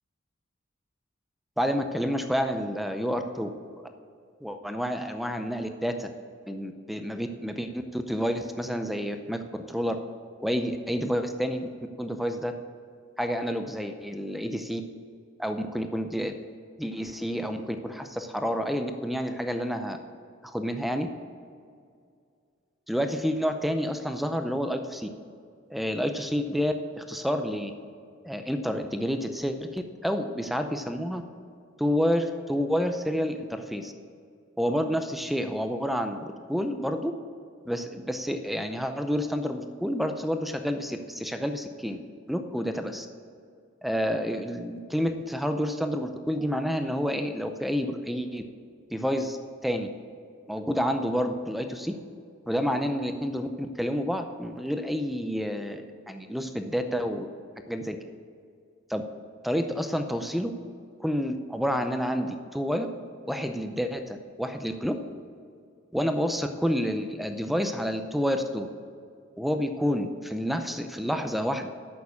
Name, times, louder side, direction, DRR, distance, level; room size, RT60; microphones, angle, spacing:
voice 1, 1.6-3.5 4.4-6.1 6.5-9.4 9.7-10.0 10.4-11.7 12.0-12.5 13.2-14.8 15.4-16.3 16.8-20.0 20.4-21.1 22.9-25.1 25.7-27.7 28.2-31.2 31.8-33.9 34.6-37.1 37.7-42.0 42.3-43.1 43.8-48.4 48.9-49.4 49.6-49.9 50.5-51.9 52.5-57.3 57.7-58.0 58.9-59.0 59.4-60.5 61.0-62.9 63.3-64.9 65.9-68.7 69.4-71.7, equal, ahead, 7 dB, 0.5 m, -29 dB
8.6 x 7.0 x 8.4 m, 2.3 s
head